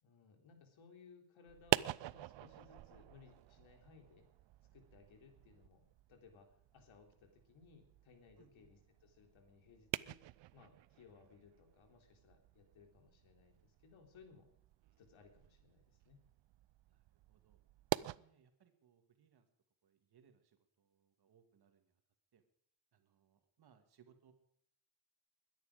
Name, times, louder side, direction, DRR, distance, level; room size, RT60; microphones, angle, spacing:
voice 1, 0.0-4.3 4.7-10.3 10.5-14.5 15.0-16.2, left 5 dB, 85° left, 4 dB, 3.8 m, -63 dB
sound 1, 1.5-18.2, right 15 dB, 70° right, 0.6 m, -45 dB
voice 2, 8.4-8.7 16.9-17.6 18.2-19.5 19.8-22.0 22.3-22.4 22.9-24.3, right 7 dB, 55° right, 7 dB, 2.2 m, -70 dB
21.5 x 10.5 x 5.1 m, 0.70 s
wide cardioid pair, 160°, 46 cm